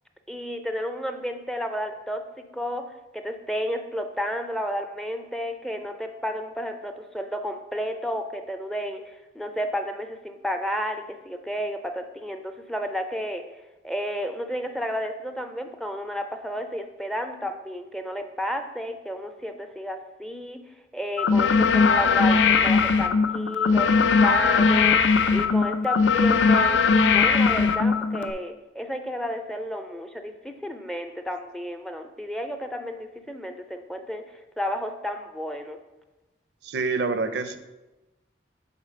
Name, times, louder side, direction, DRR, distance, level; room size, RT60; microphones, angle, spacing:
voice 1, 0.3-2.8 3.1-13.4 13.8-20.6 20.9-23.9 24.2-25.0 25.3-35.8, equal, ahead, 5 dB, 0.4 m, -32 dB
sound 1, 21.2-28.3, left 5 dB, 85° left, 0.5 m, -20 dB
voice 2, 36.6-37.6, right 4 dB, 65° right, 10 dB, 0.5 m, -26 dB
7.2 x 4.2 x 5.0 m, 1.0 s
head